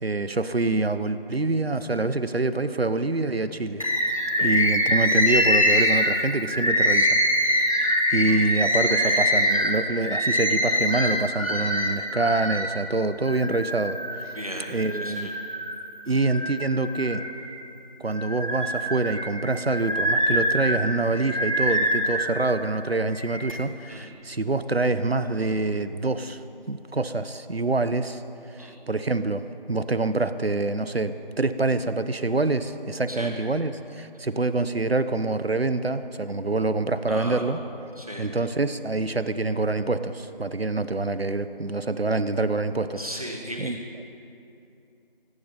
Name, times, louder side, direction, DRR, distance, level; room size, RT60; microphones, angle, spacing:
voice 1, 0.0-7.2 7.5-7.7 8.1-14.3 14.7-15.3 16.1-17.2 18.0-26.4 26.7-28.2 28.6-29.4 29.7-37.6 38.2-43.1 43.6-43.8, right 3 dB, 90° right, 12 dB, 0.9 m, -26 dB
Bird, 3.8-12.7 13.2-14.2 14.8-15.8 16.2-17.6 18.1-22.4 23.1-23.5, equal, 35° left, 1.5 m, -24 dB
voice 2, 14.3-14.7 15.0-15.3 23.9-24.1 28.6-28.8 33.1-33.3 37.1-37.4 38.0-38.3 42.9-43.8, equal, 40° right, 1 dB, 1.8 m, -36 dB
18.0 x 16.0 x 4.3 m, 2.8 s
figure-of-eight pair, 180°, 30 cm